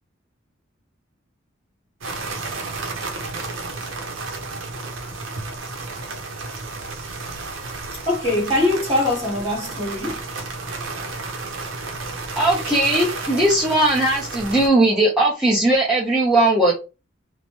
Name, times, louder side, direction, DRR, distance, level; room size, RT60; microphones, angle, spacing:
sound 1, 2.0-14.7, right 3 dB, 75° right, 0.6 m, -32 dB
voice 1, 8.0-10.2, left 1 dB, 25° right, 1.2 m, -22 dB
voice 2, 12.4-16.7, right 1 dB, 5° right, 0.6 m, -18 dB
3.0 x 2.0 x 3.0 m
head